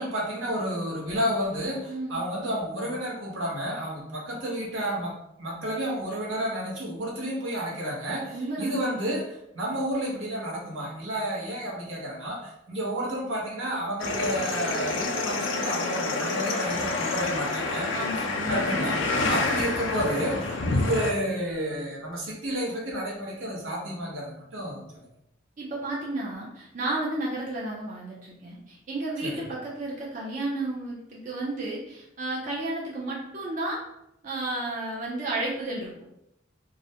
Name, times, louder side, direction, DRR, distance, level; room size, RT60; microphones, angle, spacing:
voice 1, 0.0-5.1 5.4-17.9 18.5-25.0 29.2-29.4, equal, 85° right, -3 dB, 0.8 m, -31 dB
voice 2, 1.9-2.2 8.3-8.9 17.9-18.8 19.1-19.4 25.6-33.8 34.2-35.9, right 2 dB, 40° right, -5 dB, 0.5 m, -32 dB
sound 1, 14.0-21.1, left 3 dB, 75° left, 0.4 m, -28 dB
2.4 x 2.1 x 2.7 m, 0.82 s
head